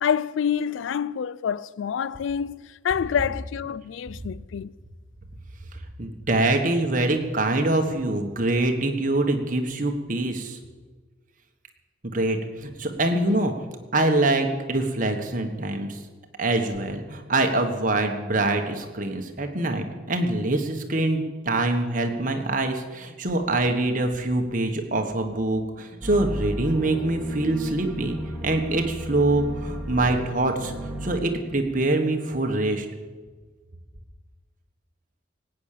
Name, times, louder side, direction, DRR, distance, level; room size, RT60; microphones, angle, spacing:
voice 1, 0.0-4.7, left 7 dB, 75° left, 0.3 m, -27 dB
voice 2, 6.0-10.6 12.0-13.5 13.9-16.0 16.4-30.7 31.0-32.9, right 2 dB, 40° right, 1.4 m, -24 dB
sound 1, 26.0-31.2, equal, ahead, 2.8 m, -34 dB
18.5 x 8.9 x 6.7 m
head